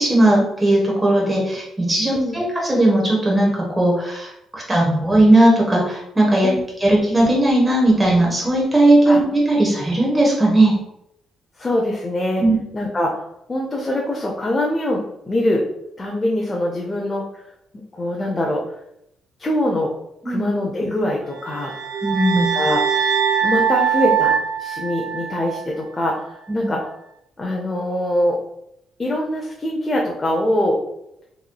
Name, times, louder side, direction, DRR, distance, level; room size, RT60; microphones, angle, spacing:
voice 1, 0.0-6.5 6.8-10.8 12.4-12.6 20.2-20.4 22.0-22.5 26.5-26.7, right 1 dB, 15° right, -3 dB, 1.0 m, -17 dB
voice 2, 11.6-12.4 12.7-13.2 13.5-15.7 16.0-17.4 17.7-18.6 19.4-19.9 20.2-21.7 22.3-22.8 23.4-26.9 27.4-28.4 29.0-30.8, left 1 dB, 25° left, -1 dB, 0.6 m, -23 dB
sound 1, 21.4-25.7, right 7 dB, 70° right, 0.4 m, -22 dB
3.8 x 3.0 x 2.2 m, 0.81 s
cardioid pair, 90°, 0 cm